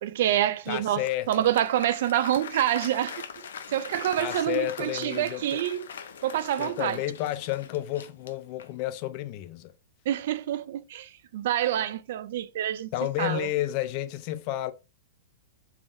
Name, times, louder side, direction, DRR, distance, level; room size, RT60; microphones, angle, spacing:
voice 1, 0.0-3.2 3.7-5.9 6.2-7.0 10.1-12.9 13.2-13.5, right 12 dB, 60° right, 0.3 m, -27 dB
voice 2, 0.7-1.3 4.2-5.6 6.6-9.7 12.9-14.7, left 14 dB, 40° left, 0.4 m, -31 dB
Applause, 0.8-8.9, left 7 dB, 85° left, 0.6 m, -42 dB
3.5 x 3.5 x 2.6 m
supercardioid pair, 155°, 0 cm